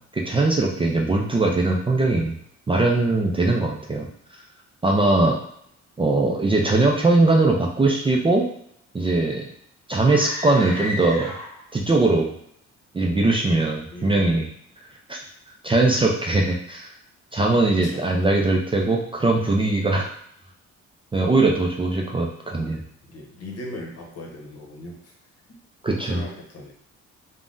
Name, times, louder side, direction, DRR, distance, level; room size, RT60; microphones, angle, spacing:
voice 1, 0.0-2.4 2.7-4.1 4.8-5.4 6.0-8.4 8.9-9.5 9.9-11.3 11.7-12.3 12.9-14.5 15.1-15.2 15.6-16.9 17.3-20.1 21.1-22.8 25.8-26.2, right 2 dB, 20° right, -1 dB, 0.4 m, -20 dB
sound 1, 10.0-11.8, left 1 dB, 10° left, 1.2 m, -33 dB
voice 2, 13.9-14.4 17.5-18.0 23.1-25.1 26.0-26.7, left 1 dB, 55° left, 0 dB, 0.9 m, -38 dB
3.3 x 2.2 x 2.5 m, 0.69 s
cardioid pair, 90°, 30 cm